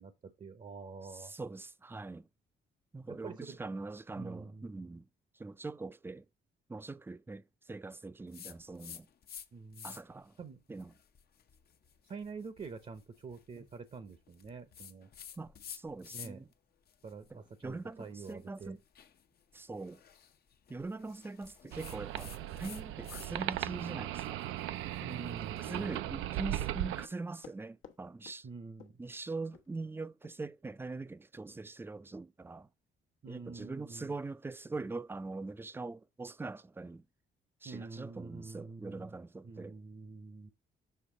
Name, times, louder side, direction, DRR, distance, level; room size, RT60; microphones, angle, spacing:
voice 1, 0.0-1.3 3.1-3.6 4.2-4.9 9.5-10.0 10.4-10.6 12.1-15.1 16.1-16.4 17.0-18.8 25.0-25.7 26.0-26.3 28.4-29.0 33.2-34.1 37.6-39.2 39.4-40.5, right 4 dB, 35° right, 0.7 m, -47 dB
voice 2, 1.1-2.3 2.9-5.1 5.3-6.3 6.7-9.1 9.8-10.4 10.7-10.9 13.6-13.7 15.4-16.5 17.3-18.8 19.5-20.0 20.7-24.4 25.6-28.5 29.0-32.7 33.3-37.0 37.6-39.8, right 3 dB, 10° right, 0.4 m, -43 dB
sound 1, 8.3-9.5 9.7-10.2 10.8-16.5 16.9-23.3 23.6-25.8, left 8 dB, 50° left, 0.7 m, -52 dB
sound 2, 21.7-27.1, right 14 dB, 85° right, 0.4 m, -37 dB
Run, 25.0-28.0 28.2-28.4 28.8-29.1 29.5-29.7 30.2-30.3, left 8 dB, 85° left, 1.0 m, -55 dB
6.6 x 3.2 x 5.0 m
cardioid pair, 90°, 20 cm